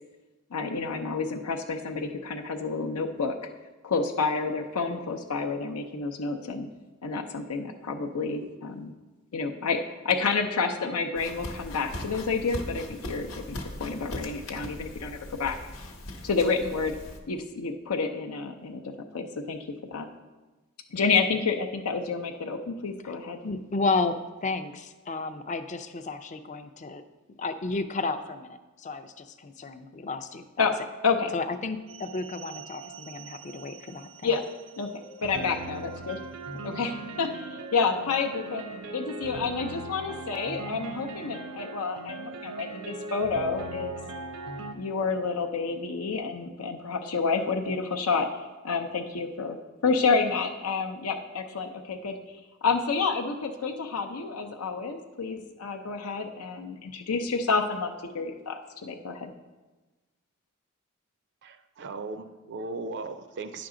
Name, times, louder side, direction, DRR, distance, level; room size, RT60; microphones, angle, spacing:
voice 1, 0.5-3.3 3.8-6.7 7.0-8.9 9.3-15.6 16.2-17.0 17.3-19.6 19.9-20.1 20.9-23.4 30.6-30.7 31.0-31.3 34.2-34.4 34.8-34.9 35.2-36.2 36.6-38.6 38.9-44.0 44.7-48.3 48.6-49.6 49.8-52.2 52.6-59.3, left 4 dB, 85° left, 3 dB, 0.6 m, -29 dB
sound 1, 11.1-17.2, left 1 dB, 70° left, 1.0 m, -39 dB
voice 2, 23.4-27.0 27.4-30.7 31.3-34.3, left 3 dB, 35° left, 9 dB, 0.4 m, -32 dB
sound 2, 31.9-44.7, right 3 dB, 85° right, 0.8 m, -40 dB
voice 3, 61.4-63.7, right 3 dB, 55° right, 9 dB, 0.4 m, -37 dB
9.5 x 6.0 x 3.8 m, 1.2 s
head